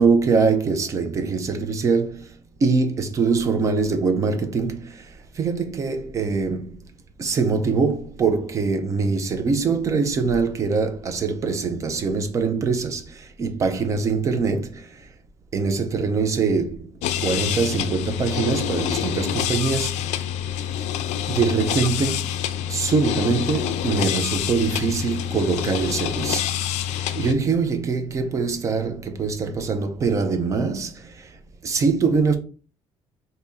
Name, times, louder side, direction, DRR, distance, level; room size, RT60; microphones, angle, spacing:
voice 1, 0.0-2.3 2.6-5.0 5.4-6.8 7.2-14.9 15.5-16.9 17.2-20.0 21.3-22.3 22.7-26.5 27.1-31.1 31.6-32.4, right 4 dB, 25° right, 0.5 m, -23 dB
sound 1, 17.0-27.3, left 10 dB, 80° left, 0.4 m, -27 dB
3.4 x 2.7 x 4.0 m
cardioid pair, 180°, 11 cm